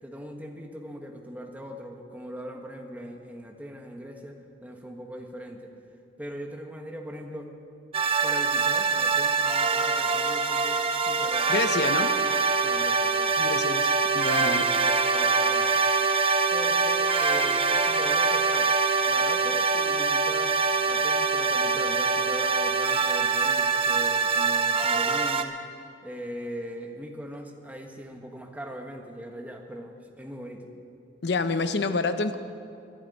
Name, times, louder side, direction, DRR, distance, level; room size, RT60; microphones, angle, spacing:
voice 1, 0.0-5.7 6.2-7.5 8.2-11.8 12.6-13.4 14.3-15.9 16.5-25.6 26.0-30.7, equal, 10° right, 2 dB, 1.2 m, -40 dB
sound 1, 7.9-25.4, right 4 dB, 30° right, 0.7 m, -24 dB
voice 2, 11.5-12.1 13.4-14.7 31.2-32.4, left 3 dB, 65° left, 10 dB, 0.7 m, -28 dB
21.5 x 11.5 x 4.1 m, 2.6 s
head